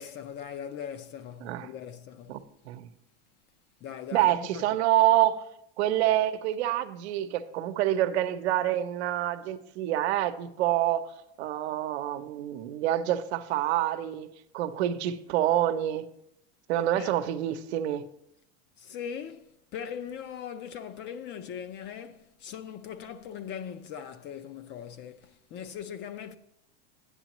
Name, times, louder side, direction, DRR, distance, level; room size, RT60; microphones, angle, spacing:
voice 1, 0.0-2.5 3.8-4.6 16.9-17.2 18.8-26.4, left 8 dB, 35° left, 0.5 m, -40 dB
voice 2, 2.3-2.9 4.1-5.4 5.8-11.1 11.4-14.3 14.5-16.1 16.7-18.0, right 13 dB, 80° right, 0.8 m, -27 dB
13.0 x 9.7 x 3.0 m
supercardioid pair, 150°, 33 cm